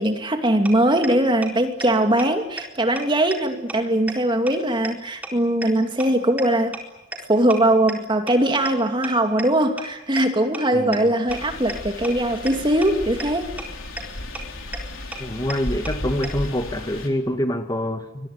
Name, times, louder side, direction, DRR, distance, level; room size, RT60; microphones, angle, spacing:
voice 1, 0.0-6.8 7.3-13.5, right 1 dB, 25° right, 5 dB, 2.6 m, -21 dB
sound 1, 0.6-0.7 1.0-1.1 1.4-1.5 1.8-1.9 2.2-2.3 2.6-2.7 3.0-3.1 3.3-3.4 3.7-3.8 4.1-4.2 4.5-4.6 4.8-4.9 5.2-5.3 5.6-5.7 6.0-6.1 6.4-6.5 6.7-6.8 7.1-7.2 7.5-7.6 7.9-8.0 8.3-8.4 8.6-8.7 9.0-9.1 9.4-9.5 9.8-9.9 10.2-10.3 10.5-10.6 10.9-11.0 11.3-11.4 11.7-11.8 12.0-12.1 12.5-12.6 12.8-12.9 13.2-13.3 13.6-13.7 14.0-14.1 14.3-14.4 14.7-14.8 15.1-15.2 15.5-15.6 15.8-15.9 16.2-16.3, right 2 dB, 10° right, 4.2 m, -31 dB
voice 2, 10.7-11.1 15.2-18.3, left 1 dB, 20° left, 6 dB, 1.6 m, -26 dB
sound 2, 11.3-17.1, left 1 dB, 80° left, 4.2 m, -34 dB
25.0 x 22.5 x 9.7 m, 0.90 s
head